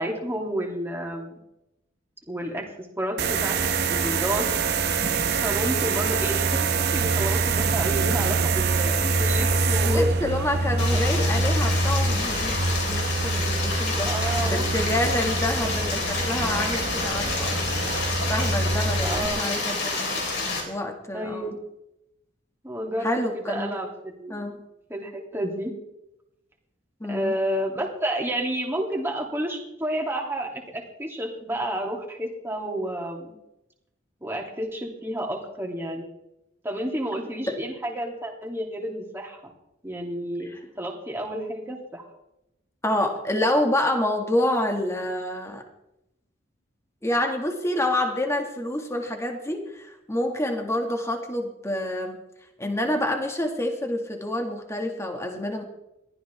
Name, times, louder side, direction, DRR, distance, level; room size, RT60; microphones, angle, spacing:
voice 1, 0.0-1.4 2.3-2.6 3.0-4.5 5.4-10.1 10.9-11.4 14.0-14.7 15.4-15.8 19.0-19.5 21.1-21.6 22.6-24.4 24.9-25.7 27.1-33.3 34.2-36.0 36.6-39.4 39.8-42.1, right 1 dB, 10° right, 0 dB, 3.1 m, -31 dB
sound 1, 3.2-19.3, right 3 dB, 55° right, 1.4 m, -25 dB
voice 2, 9.8-14.1 14.4-17.7 18.3-20.1 20.7-21.6 23.0-23.8 24.3-24.6 27.0-27.3 37.5-37.6 42.8-45.6 47.0-52.2 52.6-55.6, left 1 dB, 15° left, 3 dB, 2.3 m, -27 dB
Stream, 10.8-20.6, left 3 dB, 60° left, 5.0 m, -28 dB
22.0 x 15.0 x 3.7 m, 0.87 s
head